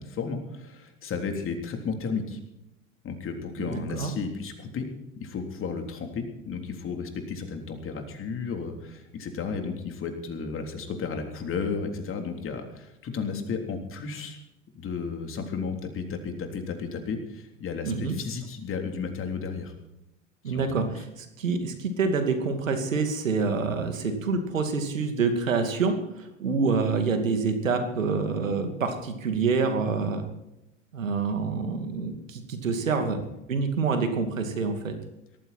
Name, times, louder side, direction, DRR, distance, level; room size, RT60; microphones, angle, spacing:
voice 1, 0.0-2.4 3.0-4.9 5.2-14.4 14.7-19.7 20.5-20.7 33.0-33.3, left 5 dB, 35° left, 4 dB, 3.5 m, -33 dB
voice 2, 3.6-4.1 17.8-18.2 20.4-20.9 21.2-30.2 30.9-33.2 33.5-34.9, right 4 dB, 90° right, 7 dB, 2.5 m, -27 dB
18.5 x 14.0 x 4.4 m, 0.90 s
hypercardioid pair, 90°, 38 cm